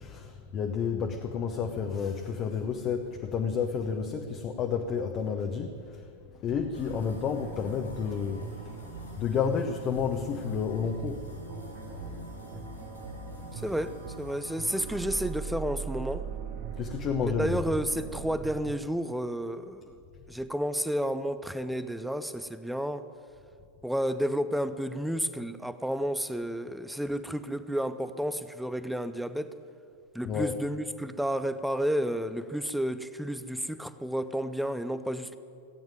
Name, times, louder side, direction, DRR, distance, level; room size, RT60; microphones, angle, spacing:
voice 1, 0.0-8.9 9.2-12.1 12.5-12.6 16.8-17.8 30.2-30.6, left 6 dB, 35° left, 4 dB, 0.9 m, -31 dB
sound 1, 6.5-18.7, right 8 dB, 45° right, 0.8 m, -41 dB
sound 2, 6.7-15.3, equal, 75° left, 3.8 m, -47 dB
voice 2, 13.5-16.2 17.4-19.9 20.3-23.1 23.8-29.5 30.1-35.4, equal, ahead, 12 dB, 0.6 m, -31 dB
16.0 x 9.0 x 9.1 m, 2.5 s
figure-of-eight pair, 90°, 0 cm